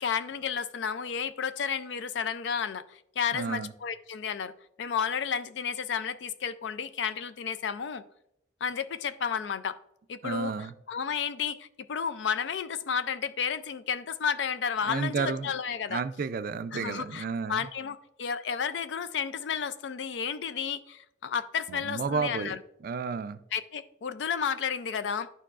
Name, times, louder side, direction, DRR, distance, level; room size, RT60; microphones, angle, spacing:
voice 1, 0.0-4.5 4.8-8.0 8.6-9.8 10.1-10.5 10.9-16.0 16.7-17.2 17.5-22.6 23.5-25.3, left 7 dB, 70° left, 0.4 m, -32 dB
voice 2, 3.3-3.7 10.2-10.7 14.8-15.5 15.9-17.7 21.7-22.5 22.8-23.4, right 5 dB, 50° right, 0.3 m, -32 dB
11.0 x 4.6 x 2.4 m
head